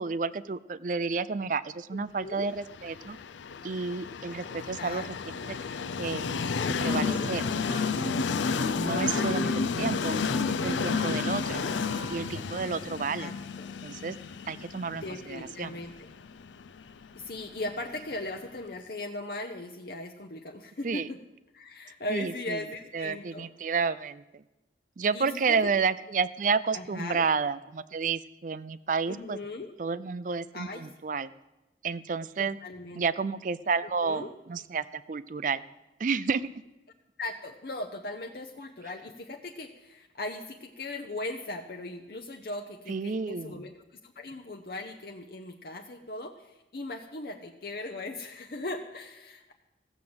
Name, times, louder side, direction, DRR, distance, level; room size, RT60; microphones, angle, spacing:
voice 1, 0.0-3.2 3.6-5.0 5.5-5.6 6.0-6.3 6.8-7.4 7.8-8.0 8.8-9.5 9.8-10.2 10.6-11.6 12.1-13.3 13.8-14.2 14.5-15.8 20.8-21.1 22.1-22.6 22.9-24.4 25.0-29.4 29.8-31.3 31.8-32.6 33.0-35.6 36.0-36.5 42.9-43.6, right 5 dB, 45° right, 16 dB, 0.4 m, -30 dB
voice 2, 1.9-2.5 4.4-4.5 4.8-5.5 6.6-7.3 8.8-9.9 11.1-11.7 13.2-13.7 14.9-16.1 17.1-21.2 21.5-23.5 25.1-25.6 26.7-27.2 29.1-29.7 30.5-30.9 32.4-33.1 34.0-34.3 37.2-49.5, left 2 dB, 55° left, 4 dB, 0.7 m, -39 dB
Train, 2.7-18.5, left 5 dB, 90° left, 0.5 m, -31 dB
Wind instrument woodwind instrument, 6.8-12.5, right 1 dB, 10° right, 1.0 m, -40 dB
15.0 x 7.1 x 7.8 m, 1.0 s
head